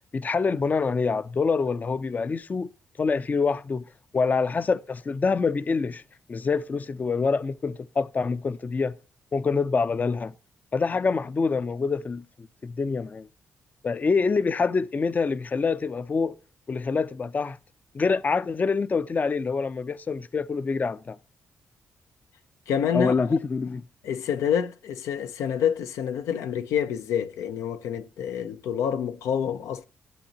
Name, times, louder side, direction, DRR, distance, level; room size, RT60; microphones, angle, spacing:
voice 1, 0.1-2.7 3.0-3.9 4.1-6.0 6.3-9.0 9.3-10.3 10.7-12.2 12.6-13.3 13.8-16.3 16.7-17.6 17.9-21.2 22.9-23.8, left 4 dB, 35° left, 0.4 m, -26 dB
voice 2, 22.7-23.4 24.0-29.8, left 8 dB, 90° left, 0.6 m, -27 dB
12.0 x 7.8 x 2.8 m
cardioid pair, 75°, 5 cm